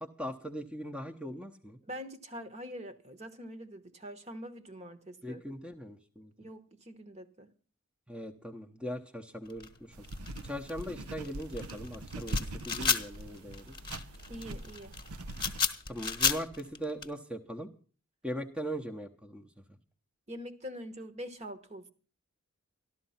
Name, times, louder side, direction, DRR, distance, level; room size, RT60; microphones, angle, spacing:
voice 1, 0.0-1.8 5.2-6.3 8.1-9.9 10.4-13.7 15.9-17.7 18.2-19.5, equal, 5° right, 3 dB, 0.8 m, -40 dB
voice 2, 1.8-5.4 6.4-7.5 14.3-15.0 20.3-21.9, equal, 30° right, 10 dB, 1.1 m, -44 dB
sound 1, 9.5-17.1, left 6 dB, 20° left, 1.3 m, -33 dB
sound 2, 9.9-15.6, right 1 dB, 90° right, 0.8 m, -41 dB
13.5 x 12.5 x 5.6 m, 0.38 s
head